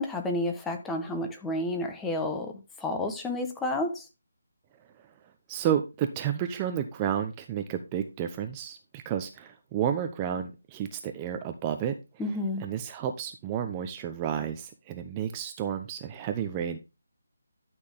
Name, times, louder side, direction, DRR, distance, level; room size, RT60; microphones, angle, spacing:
voice 1, 0.0-4.1 12.2-12.7, left 2 dB, 10° left, 1.2 m, -31 dB
voice 2, 5.5-11.9 12.6-16.8, right 9 dB, 20° right, 0.8 m, -31 dB
11.5 x 6.3 x 3.6 m
figure-of-eight pair, 155°, 0 cm